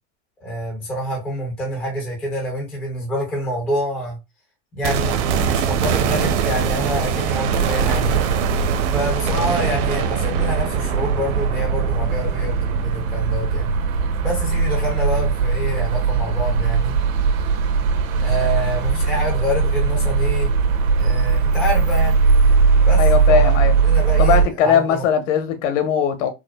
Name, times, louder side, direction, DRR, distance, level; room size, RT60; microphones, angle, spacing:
voice 1, 0.4-4.2 4.7-8.3 8.9-13.7 14.2-17.0 18.2-20.5 21.0-22.2 22.8-25.1, equal, 5° left, 0.3 m, -27 dB
sound 1, 4.8-14.8 15.1-15.2, right 7 dB, 60° right, 0.7 m, -24 dB
sound 2, 7.3-24.4, right 5 dB, 85° right, 1.1 m, -19 dB
voice 2, 23.0-23.7 24.2-26.3, left 7 dB, 70° left, 1.0 m, -19 dB
4.7 x 2.1 x 2.2 m
supercardioid pair, 180°, 39 cm